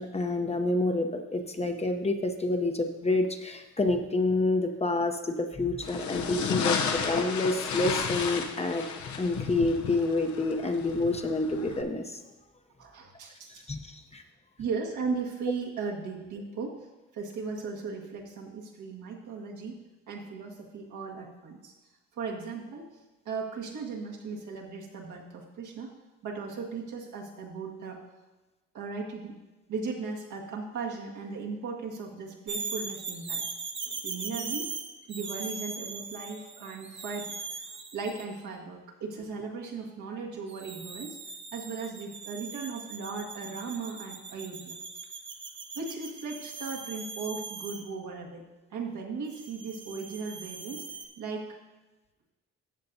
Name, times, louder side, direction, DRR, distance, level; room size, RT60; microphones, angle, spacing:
voice 1, 0.0-8.8 9.2-12.2 13.7-14.2, left 2 dB, 20° left, 5 dB, 0.8 m, -28 dB
sound 1, 5.8-11.8, left 6 dB, 70° left, 0.9 m, -33 dB
voice 2, 12.8-13.7 14.6-16.8 17.1-19.8 20.1-21.7 22.2-23.0 23.2-25.9 26.2-28.0 28.7-29.4 29.7-33.4 33.8-34.8 35.1-37.6 37.9-41.2 41.5-44.7 45.7-50.9 51.2-51.6, right 4 dB, 75° right, -1 dB, 1.7 m, -37 dB
sound 2, 32.5-38.3 40.5-47.8 49.3-51.1, right 4 dB, 40° right, 1.1 m, -40 dB
14.0 x 7.7 x 2.7 m, 1.1 s
cardioid pair, 90°, 30 cm